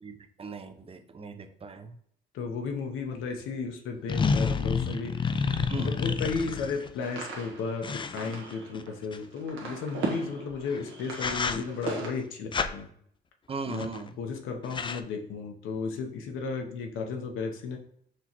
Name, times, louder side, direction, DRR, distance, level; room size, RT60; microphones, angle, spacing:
voice 1, 0.0-2.0 5.7-5.9 13.5-14.2, right 4 dB, 30° right, 7 dB, 0.6 m, -38 dB
voice 2, 2.3-5.2 5.7-12.9 13.6-13.9 14.2-17.8, left 5 dB, 85° left, 3 dB, 0.8 m, -34 dB
sound 1, 3.1-3.2 4.1-6.9 7.8-9.2 10.6-10.8 11.1-11.9 12.5-12.7 13.7-14.1 14.3-14.4 14.6-15.0, left 5 dB, 25° left, 0.4 m, -29 dB
sound 2, 7.0-12.1, right 3 dB, 85° right, 1.3 m, -38 dB
6.0 x 3.0 x 2.9 m, 0.66 s
cardioid pair, 90°, 20 cm